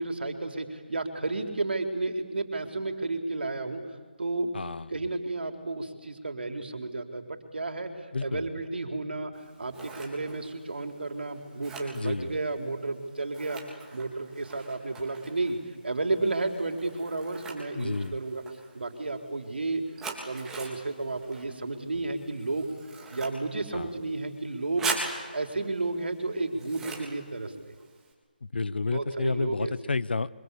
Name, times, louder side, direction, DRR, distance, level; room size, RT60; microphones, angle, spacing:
voice 1, 0.0-3.8 4.2-4.5 4.9-13.6 13.9-15.6 15.8-18.4 18.7-19.8 20.2-22.7 23.1-24.9 25.3-27.7 28.9-29.7, right 2 dB, 70° right, 5 dB, 4.2 m, -32 dB
voice 2, 4.5-4.9 8.1-8.4 11.9-12.3 17.8-18.1 23.7-23.9 28.5-30.3, left 4 dB, 70° left, 17 dB, 1.2 m, -30 dB
Scissors, 9.3-28.1, right 4 dB, 5° right, 3.5 m, -42 dB
27.5 x 25.0 x 8.5 m, 1.5 s
figure-of-eight pair, 160°, 6 cm